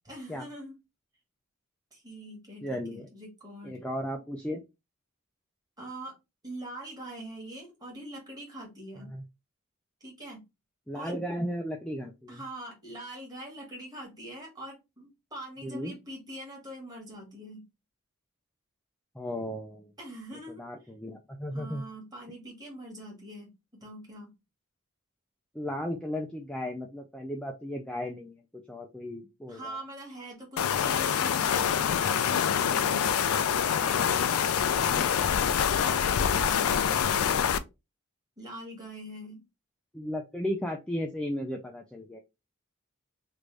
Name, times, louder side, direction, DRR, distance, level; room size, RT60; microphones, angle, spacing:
voice 1, 0.1-0.8 1.9-3.8 5.8-6.2 6.4-9.1 10.0-10.5 10.9-11.1 12.3-17.6 20.0-20.7 21.5-23.5 23.8-24.3 29.5-33.2 33.8-34.4 35.3-37.6 38.4-39.4, right 1 dB, 20° right, 0 dB, 1.5 m, -43 dB
voice 2, 2.6-3.1 3.6-4.6 9.0-9.2 10.9-12.4 15.6-15.9 19.2-19.9 20.6-21.8 25.5-28.3 28.7-29.8 34.8-35.3 39.9-42.2, equal, 5° left, 1 dB, 0.3 m, -35 dB
sound 1, 30.6-37.6, left 8 dB, 85° left, 0.4 m, -26 dB
3.2 x 2.5 x 3.3 m, 0.24 s
head